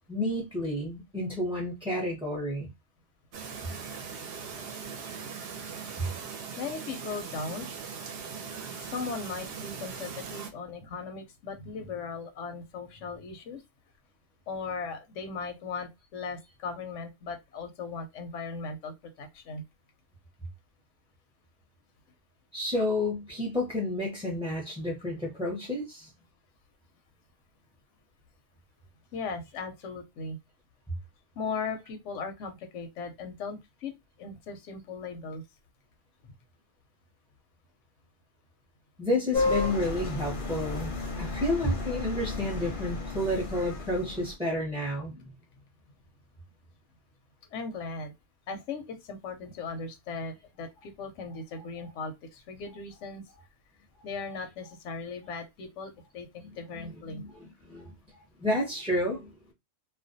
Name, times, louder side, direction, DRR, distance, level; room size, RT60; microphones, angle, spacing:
voice 1, 0.1-2.7 22.5-26.1 39.0-40.9 41.2-45.2 56.7-57.3 57.7-57.9 58.4-59.3, left 1 dB, 5° right, 0.5 m, -30 dB
Chirp tweet, 3.3-10.5, right 6 dB, 60° right, 0.7 m, -40 dB
voice 2, 6.6-7.7 8.8-13.6 14.5-19.6 29.1-30.4 31.4-35.4 36.2-36.3 47.5-48.1 48.5-53.4 53.9-57.4 58.1-58.3, left 4 dB, 80° left, 0.9 m, -38 dB
sound 1, 39.3-44.3, left 3 dB, 55° left, 0.7 m, -32 dB
2.4 x 2.1 x 2.6 m
omnidirectional pair, 1.3 m